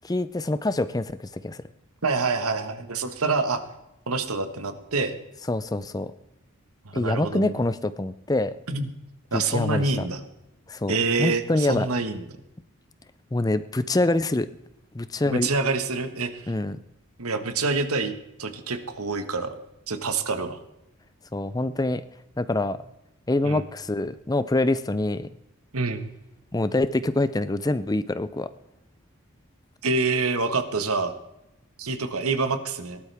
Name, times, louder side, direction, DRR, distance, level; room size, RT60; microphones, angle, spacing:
voice 1, 0.0-1.6 5.5-6.1 6.9-8.6 9.3-10.0 10.7-10.9 11.2-11.9 13.3-14.5 14.9-15.5 16.5-16.8 21.3-22.0 22.4-22.8 23.3-25.3 26.5-28.5, left 2 dB, 15° left, 14 dB, 0.4 m, -25 dB
voice 2, 2.0-3.6 4.1-5.1 6.8-7.5 8.7-8.9 9.3-10.2 10.9-12.2 15.2-16.5 17.2-18.1 18.4-19.5 19.9-20.6 23.4-23.6 25.7-26.1 29.8-31.1 31.8-33.0, right 3 dB, 90° right, 9 dB, 1.5 m, -26 dB
18.5 x 12.0 x 3.5 m, 0.90 s
head